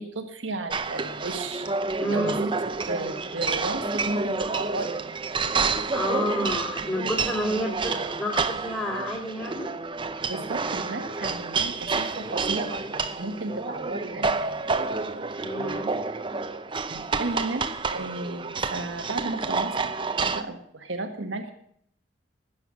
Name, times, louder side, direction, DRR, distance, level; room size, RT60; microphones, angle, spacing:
voice 1, 0.0-1.7 2.1-2.5 2.9-5.0 10.2-14.7 16.9-19.7 20.3-21.5, right 2 dB, 85° right, 5 dB, 1.5 m, -34 dB
sound 1, 0.7-20.4, right 4 dB, 25° right, 0.7 m, -29 dB
voice 2, 2.0-2.4 5.9-9.7 15.4-15.9, equal, 20° left, -5 dB, 2.7 m, -29 dB
19.5 x 8.0 x 6.1 m, 0.68 s
head